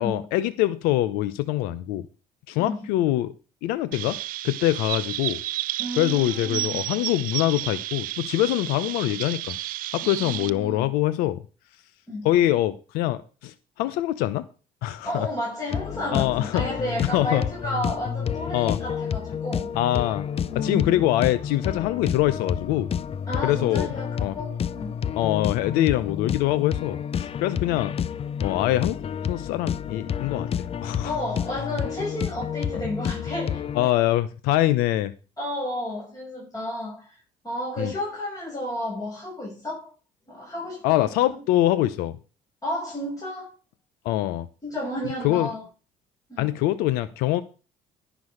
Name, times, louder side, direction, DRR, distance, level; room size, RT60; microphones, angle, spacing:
voice 1, 0.0-2.0 2.5-3.3 3.6-4.2 4.4-5.4 6.0-9.6 9.9-11.4 12.2-14.4 14.8-15.3 16.1-16.7 17.0-17.4 18.5-18.8 19.8-20.3 20.5-22.9 23.4-23.9 24.2-24.3 25.2-27.9 28.4-29.0 29.2-30.5 30.8-31.1 33.7-35.1 37.8-37.9 40.8-42.2 44.0-44.5 45.2-45.5 46.4-47.4, left 14 dB, 85° left, 0.8 m, -24 dB
Chirp tweet, 3.9-10.5, right 15 dB, 70° right, 0.6 m, -32 dB
voice 2, 5.8-6.8 10.0-10.9 12.1-12.3 15.0-19.7 20.5-21.0 23.3-25.0 31.0-33.9 35.4-37.2 37.4-39.9 40.3-41.4 42.6-43.5 44.6-45.6 46.3-46.5, left 1 dB, 25° left, 6.0 m, -32 dB
sound 1, 15.7-33.9, left 8 dB, 40° left, 0.6 m, -30 dB
10.5 x 6.2 x 6.4 m
supercardioid pair, 80°, 15 cm